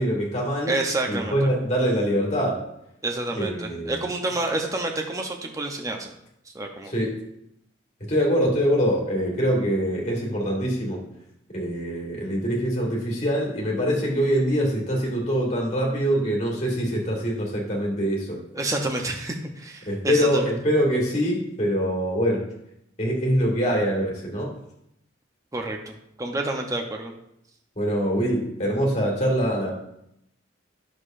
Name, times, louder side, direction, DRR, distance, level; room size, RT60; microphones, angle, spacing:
voice 1, 0.0-0.8 1.1-2.6 3.3-4.0 6.8-7.2 8.0-11.0 11.5-18.4 19.9-22.5 23.0-24.5 27.8-29.7, equal, 35° left, -2 dB, 1.9 m, -24 dB
voice 2, 0.7-1.5 3.0-6.1 6.5-6.9 18.5-20.5 25.5-27.1, right 2 dB, 15° right, 2 dB, 0.7 m, -29 dB
9.4 x 6.5 x 2.6 m, 0.78 s
head